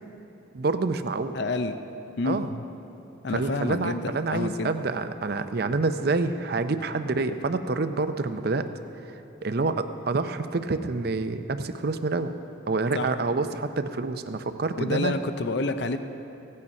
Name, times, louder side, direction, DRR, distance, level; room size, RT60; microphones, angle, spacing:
voice 1, 0.5-1.4 2.2-2.5 3.3-8.7 9.4-12.3 12.7-15.1, right 3 dB, 50° right, 9 dB, 0.5 m, -27 dB
voice 2, 1.3-1.7 2.2-2.6 3.2-4.7 12.9-13.1 14.8-16.0, left 3 dB, 60° left, 9 dB, 0.5 m, -28 dB
16.5 x 8.6 x 5.3 m, 2.9 s
head